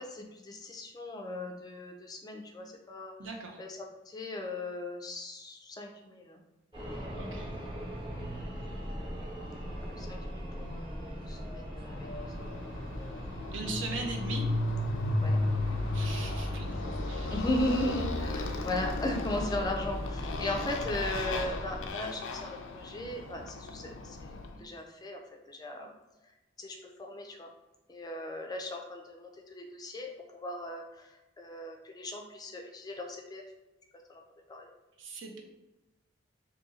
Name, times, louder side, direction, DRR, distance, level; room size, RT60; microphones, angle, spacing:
voice 1, 0.0-3.1 3.6-6.4 8.3-8.5 9.6-12.0 15.2-15.4 17.3-25.2 25.5-25.9 26.6-27.5 27.9-33.4 34.1-34.2 34.5-34.7, left 1 dB, 20° left, 2 dB, 0.4 m, -37 dB
voice 2, 3.2-3.6 7.1-7.5 13.5-14.5 15.9-17.4 20.4-20.8 35.0-35.4, right 3 dB, 70° right, 2 dB, 0.6 m, -40 dB
sound 1, 6.7-21.9, equal, 25° right, 1.0 m, -39 dB
Motorcycle, 11.9-24.6, left 2 dB, 90° left, 0.4 m, -35 dB
2.7 x 2.6 x 4.0 m, 0.99 s
head